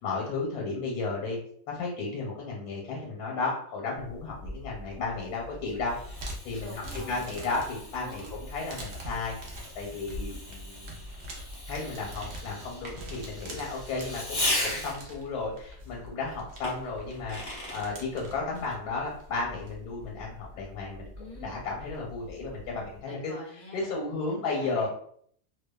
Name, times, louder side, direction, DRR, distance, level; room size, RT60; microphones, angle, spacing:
voice 1, 0.0-1.4 1.7-5.9 6.4-6.7 7.0-9.4 9.7-11.0 11.7-21.1 21.4-23.3 23.7-24.9, left 3 dB, 85° left, -2 dB, 1.2 m, -34 dB
sound 1, 3.9-23.0, equal, 65° right, 0.7 m, -44 dB
Fireworks, 5.3-15.2 16.6-17.9, left 1 dB, 35° left, 0.7 m, -38 dB
voice 2, 6.6-7.5 8.0-8.3 21.2-21.6 23.1-23.9 24.3-24.9, left 1 dB, 15° right, -7 dB, 0.7 m, -46 dB
2.5 x 2.2 x 2.2 m, 0.62 s
omnidirectional pair, 1.6 m